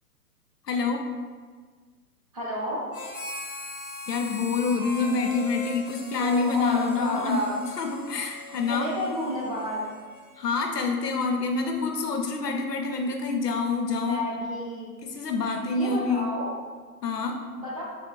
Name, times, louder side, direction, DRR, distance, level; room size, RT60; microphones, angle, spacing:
voice 1, 0.7-1.0 4.1-7.4 7.8-8.9 10.4-14.2 15.0-16.3 17.0-17.4, left 4 dB, 90° left, 3 dB, 0.5 m, -27 dB
voice 2, 2.3-2.9 6.2-7.6 8.7-9.9 14.0-14.9 15.7-16.5 17.6-17.8, equal, 25° right, -6 dB, 0.5 m, -31 dB
Harmonica, 2.9-10.7, left 3 dB, 35° left, 0.7 m, -40 dB
4.0 x 2.1 x 2.4 m, 1.5 s
figure-of-eight pair, 115°, 46 cm